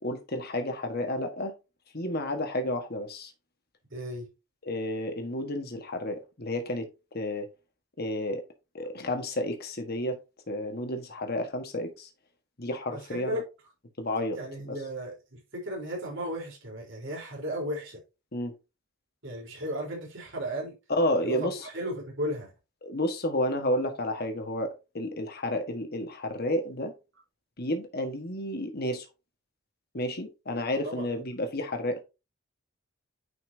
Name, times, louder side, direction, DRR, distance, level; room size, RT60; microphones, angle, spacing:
voice 1, 0.0-1.5 1.9-3.3 4.6-7.5 8.0-8.4 8.7-10.2 10.5-12.1 12.6-13.4 14.0-14.4 14.6-14.8 18.3-18.5 20.9-21.7 22.8-26.9 27.6-29.1 29.9-32.0, left 1 dB, 50° left, 1.5 m, -31 dB
voice 2, 3.9-4.3 12.9-13.4 14.3-18.0 19.2-20.7 21.2-22.5 30.8-31.1, equal, 65° right, 3.9 m, -35 dB
9.6 x 5.7 x 2.8 m
head